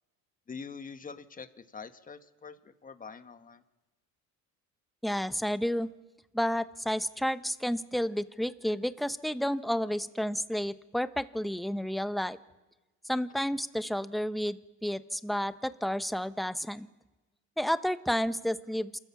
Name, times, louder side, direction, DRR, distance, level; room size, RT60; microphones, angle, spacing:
voice 1, 0.5-3.6, left 5 dB, 25° left, 9 dB, 1.4 m, -45 dB
voice 2, 5.0-5.9 6.3-12.4 13.0-16.9 17.6-19.0, equal, ahead, 12 dB, 0.8 m, -31 dB
28.0 x 14.0 x 7.2 m, 1.1 s
cardioid pair, 105°, 33 cm